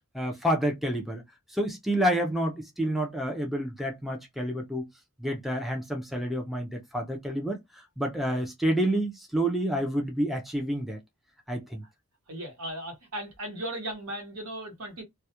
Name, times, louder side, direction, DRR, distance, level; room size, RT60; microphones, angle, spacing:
voice 1, 0.1-1.2 1.5-4.9 5.2-11.0 11.5-11.8, right 1 dB, ahead, 0.4 m, -29 dB
voice 2, 12.3-15.0, right 1 dB, 70° right, 1.0 m, -37 dB
2.2 x 2.1 x 2.8 m
head